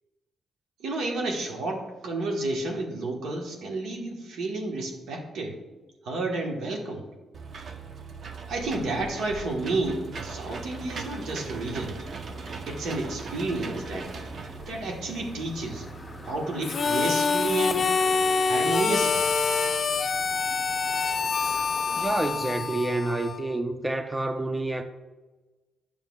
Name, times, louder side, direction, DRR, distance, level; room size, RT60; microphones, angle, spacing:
voice 1, 0.8-5.6 6.0-7.0 8.5-12.0 12.7-14.1 14.7-15.9 16.2-17.9 18.4-19.2 19.5-19.8, right 2 dB, 80° right, 1.4 m, -31 dB
Engine / Mechanisms, 7.3-16.3, right 4 dB, 55° right, 0.7 m, -39 dB
sound 1, 9.7-22.4, left 2 dB, 20° left, 1.0 m, -45 dB
Harmonica, 16.6-23.6, left 5 dB, 45° left, 0.4 m, -26 dB
voice 2, 21.9-24.8, right 2 dB, 15° right, 0.5 m, -28 dB
9.4 x 6.9 x 2.4 m
cardioid pair, 85°, 0 cm